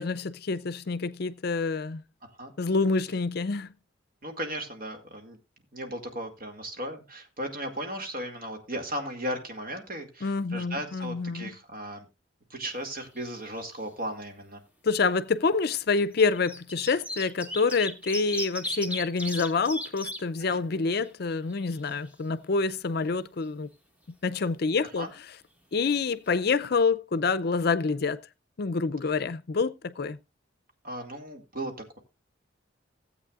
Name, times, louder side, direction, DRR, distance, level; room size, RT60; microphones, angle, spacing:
voice 1, 0.0-2.0 2.6-3.7 10.2-11.5 14.8-23.7 24.2-25.1 25.7-28.2 28.6-30.2, left 4 dB, 55° left, 0.5 m, -27 dB
voice 2, 4.2-5.4 5.7-12.1 12.5-14.6 20.5-20.6 25.0-25.1 30.8-32.0, right 1 dB, 50° right, 2.3 m, -36 dB
sound 1, 12.7-13.5 13.7-13.8 15.0-15.1 16.0-20.2 20.7-20.8 21.0-22.1 25.9-26.0 26.3-26.4, equal, 10° right, 1.5 m, -37 dB
16.5 x 8.3 x 2.4 m
head